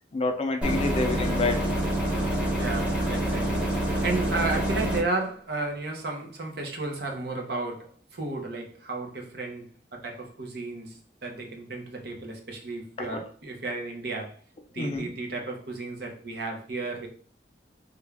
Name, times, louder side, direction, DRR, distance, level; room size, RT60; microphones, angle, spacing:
voice 1, 0.1-1.8 13.0-13.2 14.8-15.2, left 3 dB, 35° left, 0.5 m, -28 dB
sound 1, 0.6-5.0, right 1 dB, 5° right, 0.8 m, -26 dB
voice 2, 2.6-3.6 4.0-14.4 14.7-17.1, right 3 dB, 65° right, 0.8 m, -33 dB
3.5 x 2.3 x 3.3 m
head